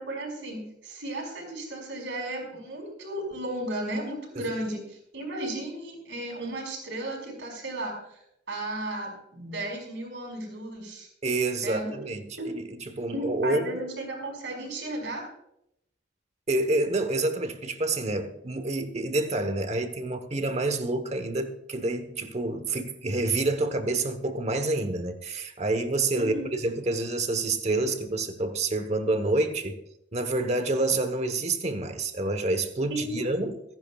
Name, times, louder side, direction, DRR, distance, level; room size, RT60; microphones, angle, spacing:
voice 1, 0.0-4.8 5.1-7.9 8.5-11.1 11.6-12.0 12.4-12.5 13.1-15.2 26.2-26.5 32.9-33.3, right 1 dB, 70° right, 5.5 m, -34 dB
voice 2, 11.2-13.8 16.5-29.7 30.1-33.6, right 2 dB, 35° right, 1.1 m, -28 dB
25.5 x 10.5 x 2.4 m
head